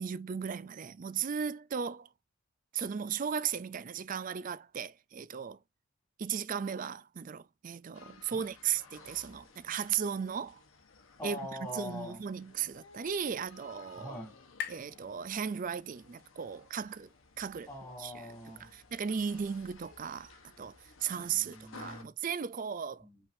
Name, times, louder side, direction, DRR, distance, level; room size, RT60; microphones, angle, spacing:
voice 1, 0.0-2.1 2.7-5.6 6.2-10.6 11.2-11.4 11.7-14.1 14.7-17.1 17.4-17.7 18.0-18.2 18.7-20.7 21.0-23.0, right 7 dB, 40° right, 0.4 m, -36 dB
sound 1, 7.9-22.0, left 4 dB, 75° left, 1.2 m, -56 dB
voice 2, 11.2-12.2 14.0-14.4 17.7-18.8 21.1-22.1 23.0-23.2, left 1 dB, 10° left, 3.1 m, -43 dB
sound 2, 12.2-16.0, left 8 dB, 50° left, 0.6 m, -48 dB
5.6 x 3.5 x 2.7 m
head